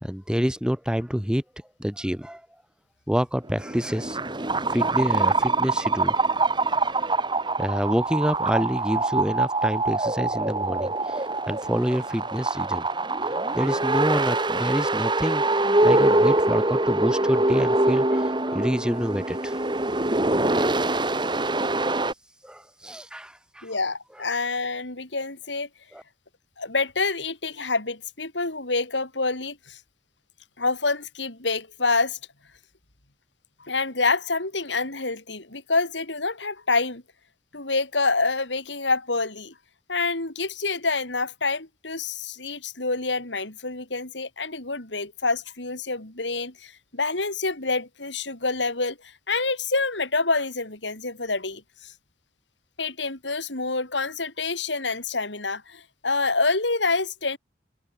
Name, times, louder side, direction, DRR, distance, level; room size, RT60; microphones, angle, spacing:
voice 1, 0.0-1.4 1.8-2.4 3.1-4.2 4.5-6.1 7.6-10.9 11.5-12.8 13.5-15.4 15.8-19.5 20.5-21.1 22.4-23.6, equal, 5° right, 1.6 m, -27 dB
sound 1, 3.4-22.1, right 2 dB, 25° right, 3.1 m, -24 dB
voice 2, 23.6-25.7 26.6-29.8 30.6-32.2 33.6-37.0 37.5-39.5 39.9-49.0 49.3-51.9 52.8-57.4, left 3 dB, 85° left, 4.6 m, -27 dB
head